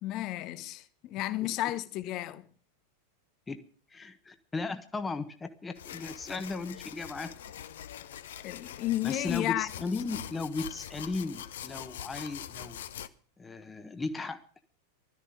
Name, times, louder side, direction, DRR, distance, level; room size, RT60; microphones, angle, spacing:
voice 1, 0.0-2.5 8.4-9.7, left 15 dB, 40° left, 1.1 m, -32 dB
voice 2, 3.9-7.3 9.0-12.8 13.4-14.4, left 3 dB, 15° left, 1.4 m, -36 dB
sound 1, 5.8-13.1, left 10 dB, 60° left, 0.8 m, -43 dB
16.5 x 13.0 x 5.4 m
figure-of-eight pair, 90°, 0 cm